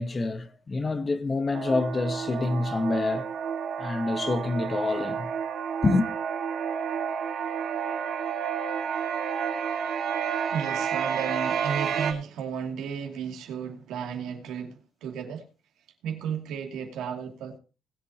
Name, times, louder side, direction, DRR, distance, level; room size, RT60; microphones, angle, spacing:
voice 1, 0.0-3.3 3.8-5.3 5.8-6.1, left 3 dB, 30° left, 1.2 m, -27 dB
sound 1, 1.5-12.1, right 7 dB, 70° right, 2.0 m, -30 dB
voice 2, 10.5-15.4 16.0-17.6, right 7 dB, 85° right, 2.6 m, -34 dB
20.5 x 8.3 x 2.9 m
cardioid pair, 90°, 0 cm